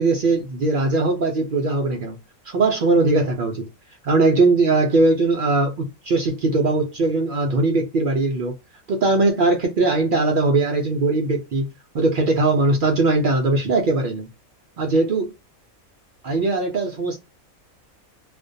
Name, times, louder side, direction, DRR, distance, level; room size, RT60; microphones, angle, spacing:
voice 1, 0.0-2.2 2.4-3.7 4.0-8.6 8.9-14.3 14.8-15.3 16.2-17.2, right 3 dB, 75° right, 0.4 m, -20 dB
2.4 x 2.2 x 2.5 m
omnidirectional pair, 1.5 m